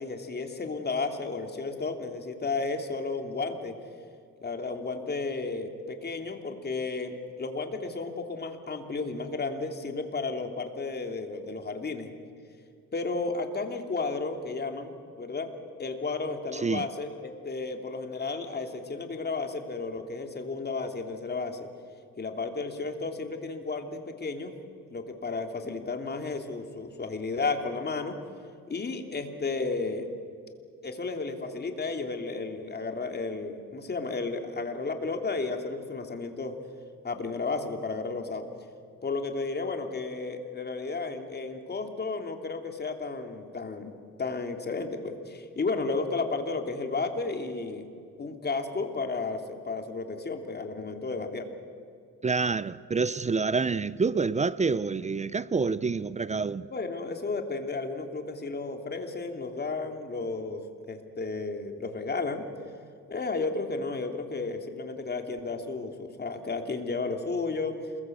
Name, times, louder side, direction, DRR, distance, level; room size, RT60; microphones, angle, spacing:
voice 1, 0.0-3.8 4.4-12.1 12.9-15.5 15.8-21.6 22.2-24.5 24.9-28.2 28.7-30.1 30.8-36.5 37.0-38.5 39.0-47.9 48.2-51.5 56.7-62.4 63.1-67.8, left 3 dB, 35° left, 3.1 m, -33 dB
voice 2, 52.2-56.7, right 4 dB, 25° right, 0.6 m, -27 dB
28.0 x 21.5 x 8.0 m
cardioid pair, 90°, 30 cm